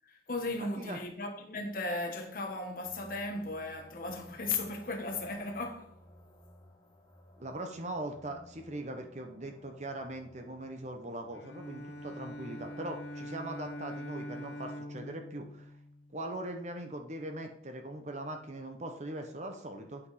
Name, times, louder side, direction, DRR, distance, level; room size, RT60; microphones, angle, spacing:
voice 1, 0.0-5.9, left 3 dB, 50° left, 1.2 m, -36 dB
voice 2, 0.6-1.0 7.4-15.7 16.1-20.0, right 1 dB, 40° right, 0.9 m, -41 dB
sound 1, 2.8-13.9, equal, 15° left, 3.0 m, -59 dB
Bowed string instrument, 11.3-16.6, left 1 dB, 70° left, 0.8 m, -44 dB
8.6 x 5.2 x 4.0 m
head